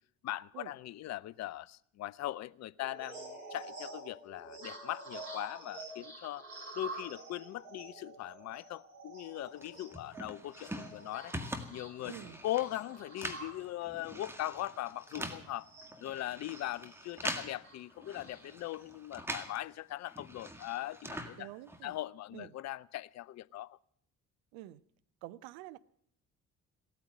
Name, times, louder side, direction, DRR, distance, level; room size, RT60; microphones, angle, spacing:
voice 1, 0.2-6.4 6.8-11.3 11.7-12.1 12.4-15.7 16.0-21.5 21.8-23.8, left 14 dB, 40° left, 0.5 m, -40 dB
sound 1, 2.8-16.0 16.5-18.9, right 2 dB, 80° right, 4.0 m, -49 dB
sound 2, 9.6-19.6 19.9-22.0, right 1 dB, 5° right, 1.9 m, -44 dB
voice 2, 12.1-12.4 21.4-22.0 22.3-22.6 24.5-24.8 25.2-25.8, right 15 dB, 60° right, 0.7 m, -48 dB
16.5 x 9.0 x 9.3 m
figure-of-eight pair, 45°, 41 cm